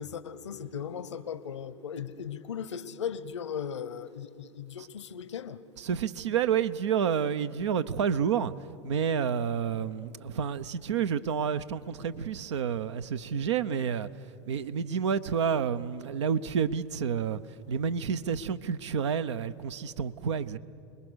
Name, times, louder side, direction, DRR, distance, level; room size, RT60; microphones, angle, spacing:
voice 1, 0.0-5.6, left 7 dB, 85° left, 0.9 m, -37 dB
voice 2, 5.8-8.5 8.8-14.1 14.5-17.4 17.7-20.6, right 7 dB, 80° right, 0.8 m, -29 dB
28.5 x 20.5 x 6.3 m
hypercardioid pair, 90°, 15 cm